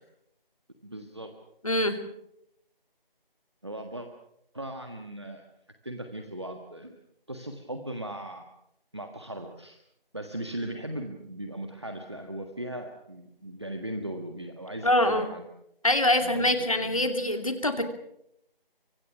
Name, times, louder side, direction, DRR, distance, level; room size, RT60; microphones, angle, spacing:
voice 1, 0.8-1.3 3.6-4.1 4.5-5.4 5.8-7.0 7.3-8.5 8.9-9.8 10.1-15.4 16.2-16.5 16.8-17.1, right 1 dB, 30° right, 5 dB, 1.5 m, -38 dB
voice 2, 1.6-2.0 14.8-15.3 15.8-17.9, left 1 dB, 35° left, 7 dB, 2.6 m, -24 dB
25.5 x 25.0 x 6.1 m, 0.77 s
figure-of-eight pair, 175°, 29 cm